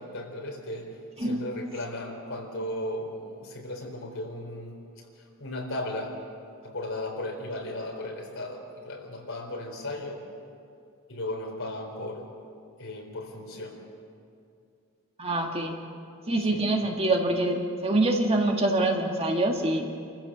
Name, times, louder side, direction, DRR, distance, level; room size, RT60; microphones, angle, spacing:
voice 1, 0.0-6.2 6.6-10.3 11.1-12.3 12.8-13.8 16.4-16.9, left 1 dB, 65° left, 1 dB, 4.0 m, -36 dB
voice 2, 15.2-15.8 16.3-19.8, right 2 dB, 30° right, 2 dB, 1.8 m, -25 dB
28.0 x 15.0 x 7.4 m, 2.4 s
head